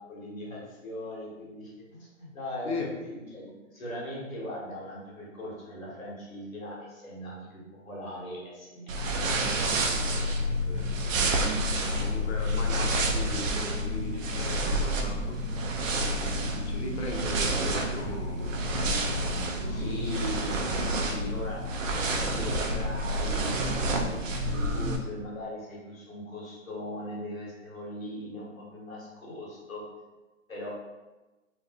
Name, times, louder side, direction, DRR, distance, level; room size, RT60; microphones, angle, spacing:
voice 1, 0.0-10.6 12.7-12.9 19.7-21.7 22.0-29.9 30.5-30.7, left 1 dB, 85° left, -5 dB, 1.2 m, -40 dB
sound 1, 8.9-25.0, right 1 dB, 70° right, 0.5 m, -29 dB
voice 2, 10.7-11.3 11.8-15.7 16.3-18.6 19.1-19.9, left 3 dB, 55° left, 1 dB, 0.6 m, -39 dB
2.5 x 2.4 x 2.2 m, 1.1 s
figure-of-eight pair, 130°, 40 cm